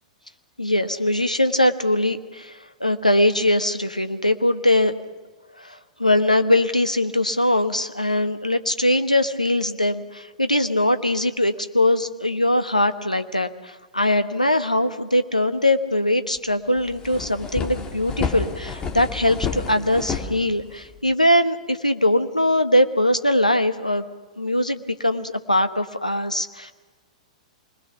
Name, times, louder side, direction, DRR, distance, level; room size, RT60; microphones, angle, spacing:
voice 1, 0.6-4.9 5.6-24.0 24.4-26.7, left 1 dB, 90° left, 9 dB, 1.1 m, -21 dB
sound 1, 16.4-16.5 16.8-21.0, left 5 dB, 20° left, 2.3 m, -30 dB
25.0 x 20.5 x 5.9 m, 1.3 s
figure-of-eight pair, 100°, 4 cm